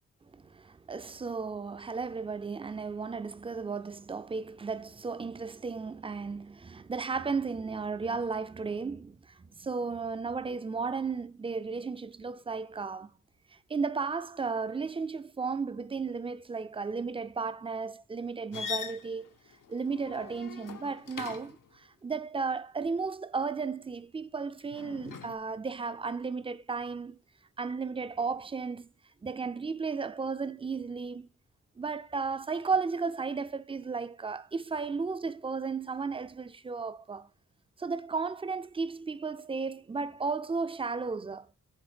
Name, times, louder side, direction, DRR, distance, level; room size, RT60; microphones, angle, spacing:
voice 1, 0.3-13.1 13.7-19.3 19.7-27.2 27.6-28.9 29.2-31.3 31.8-37.3 37.8-41.5, right 4 dB, 20° right, 0.4 m, -34 dB
sound 1, 18.5-21.7 24.7-25.3, left 6 dB, 90° left, 1.0 m, -41 dB
9.9 x 3.6 x 5.0 m
wide cardioid pair, 120°, 31 cm